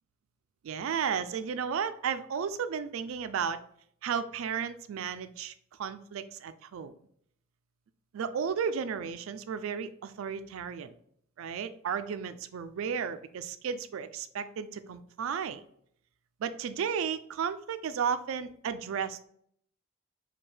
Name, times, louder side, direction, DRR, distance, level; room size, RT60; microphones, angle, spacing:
voice 1, 0.6-3.6 4.0-5.5 5.8-6.9 8.1-10.9 11.4-15.6 16.4-19.3, right 7 dB, 75° right, 12 dB, 0.3 m, -33 dB
4.4 x 2.3 x 3.2 m, 0.66 s
head